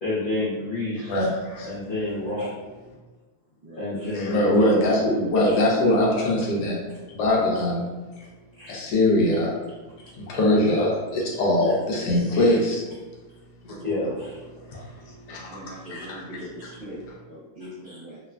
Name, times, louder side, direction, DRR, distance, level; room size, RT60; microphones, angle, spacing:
voice 1, 0.0-1.2 1.6-2.6 3.8-4.9 5.4-5.6 8.6-8.7 12.3-12.5 13.8-14.4 14.7-14.8 15.9-16.0 17.8-18.0, left 2 dB, 65° left, -9 dB, 0.5 m, -29 dB
voice 2, 1.1-1.7 4.1-6.8 7.1-7.8 8.7-9.5 10.2-12.8 13.7-13.8 14.6-14.8 15.1-15.5 15.9-16.2, left 1 dB, 85° left, -2 dB, 1.3 m, -22 dB
voice 3, 3.6-3.9 13.8-14.1 15.5-18.2, equal, 55° right, -11 dB, 0.6 m, -41 dB
3.1 x 2.1 x 2.3 m, 1.2 s
omnidirectional pair, 1.8 m